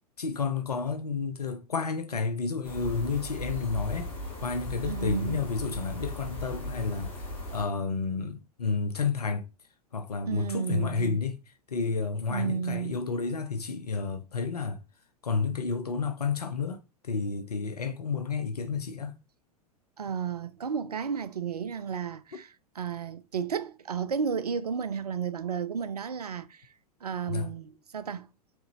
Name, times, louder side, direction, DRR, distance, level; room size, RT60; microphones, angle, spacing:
voice 1, 0.2-4.1 4.4-9.5 9.9-11.4 11.7-14.8 15.2-19.2 22.3-22.4 27.3-27.5, left 5 dB, 75° left, 0.7 m, -31 dB
sound 1, 2.6-7.6, equal, 25° left, 2.3 m, -37 dB
voice 2, 4.8-5.4 10.3-11.2 12.3-12.9 20.0-26.6 27.0-28.3, right 7 dB, 75° right, 0.5 m, -33 dB
4.7 x 3.8 x 2.7 m
figure-of-eight pair, 90°, 20 cm